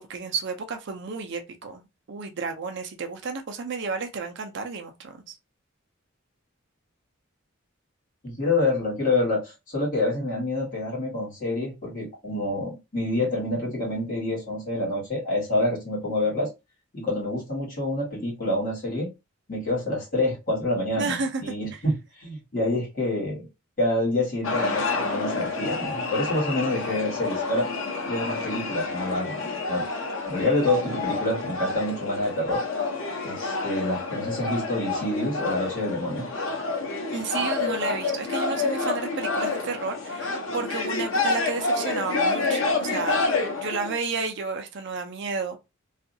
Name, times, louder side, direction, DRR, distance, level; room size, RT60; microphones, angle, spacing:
voice 1, 0.1-5.4 21.0-21.4 21.7-21.8 37.1-43.2 43.5-45.6, right 4 dB, 60° right, 0.5 m, -32 dB
voice 2, 8.2-16.5 16.9-19.1 19.5-23.5 23.8-27.7 28.1-29.8 30.3-32.6 33.2-36.3, left 2 dB, 40° left, 1.6 m, -27 dB
sound 1, 24.4-44.0, left 3 dB, 70° left, 0.7 m, -28 dB
2.7 x 2.4 x 2.6 m
head